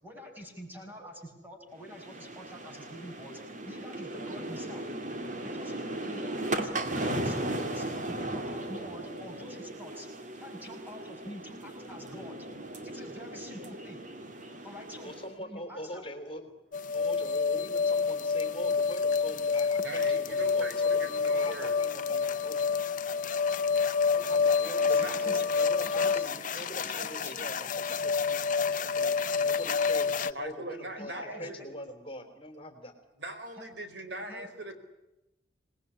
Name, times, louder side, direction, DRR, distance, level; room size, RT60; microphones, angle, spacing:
voice 1, 0.0-4.8 5.4-5.8 6.1-10.1 10.3-12.4 12.8-14.0 14.6-15.1 15.4-16.0 24.6-27.4 30.9-31.5 33.6-33.7 34.2-34.5, equal, 10° right, 2 dB, 7.1 m, -46 dB
sound 1, 1.8-15.3, right 1 dB, 45° right, 2.9 m, -37 dB
voice 2, 15.0-16.4 16.9-22.7 24.1-32.9, equal, 30° left, 8 dB, 3.4 m, -43 dB
sound 2, 16.7-30.3, left 5 dB, 45° left, 0.9 m, -28 dB
voice 3, 19.8-21.8 24.9-25.5 30.3-31.7 33.2-34.8, right 1 dB, 65° right, 7 dB, 4.4 m, -40 dB
27.5 x 20.5 x 9.9 m, 0.93 s
head